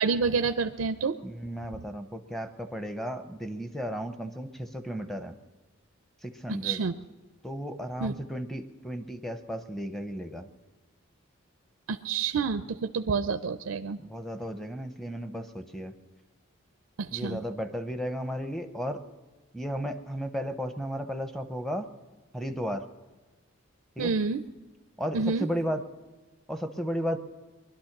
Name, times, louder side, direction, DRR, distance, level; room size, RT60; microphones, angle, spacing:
voice 1, 0.0-1.2 6.5-7.0 8.0-8.1 11.9-14.0 17.0-17.4 24.0-24.4 25.1-25.5, right 5 dB, 85° right, 10 dB, 0.5 m, -28 dB
voice 2, 1.2-5.3 6.2-6.8 7.4-10.5 14.1-15.9 17.1-19.0 19.5-21.9 22.3-22.8 24.0-24.1 25.0-25.8 26.5-27.2, equal, ahead, 7 dB, 0.7 m, -34 dB
21.0 x 11.5 x 5.9 m, 1.3 s
head